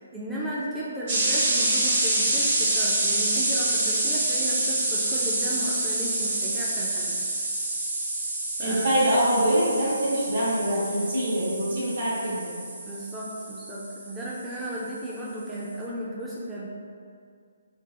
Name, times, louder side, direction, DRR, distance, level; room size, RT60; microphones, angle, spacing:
voice 1, 0.1-7.2 8.6-9.0 12.9-16.7, right 1 dB, 5° right, -8 dB, 0.3 m, -34 dB
sound 1, 1.1-14.7, right 2 dB, 40° right, 0.8 m, -27 dB
voice 2, 8.6-12.6, right 1 dB, 60° right, -7 dB, 1.1 m, -24 dB
3.7 x 2.6 x 2.4 m, 2.2 s
figure-of-eight pair, 140°, 0 cm